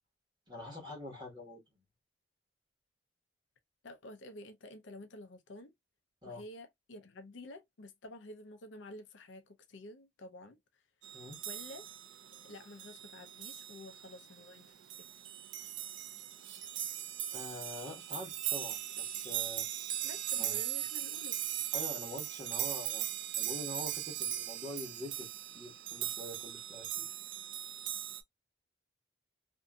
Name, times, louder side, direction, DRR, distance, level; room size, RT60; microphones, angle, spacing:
voice 1, 0.5-1.6 6.2-6.4 11.1-11.4 17.3-19.7 20.4-20.6 21.7-27.1, left 1 dB, 20° right, 1.3 m, -45 dB
voice 2, 3.8-5.7 6.2-10.8 11.4-11.9 12.4-15.1 20.0-21.4, left 1 dB, 70° left, 0.6 m, -50 dB
sound 1, 11.0-28.2, right 12 dB, 65° right, 0.4 m, -39 dB
2.6 x 2.6 x 2.3 m
head